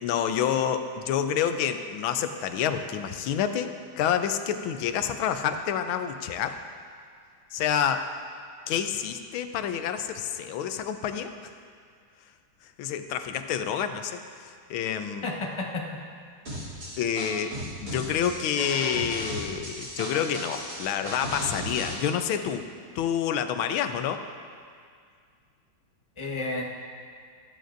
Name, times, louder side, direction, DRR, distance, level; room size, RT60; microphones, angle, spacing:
voice 1, 0.0-6.6 7.5-8.0 8.7-11.5 12.8-15.3 17.0-22.7 22.9-24.2, left 8 dB, 85° left, 8 dB, 1.5 m, -28 dB
voice 2, 15.2-16.0 26.2-26.6, left 2 dB, 20° left, -1 dB, 0.9 m, -31 dB
sound 1, 16.5-21.9, equal, 50° right, 3.8 m, -35 dB
15.0 x 12.5 x 2.6 m, 2.1 s
omnidirectional pair, 2.2 m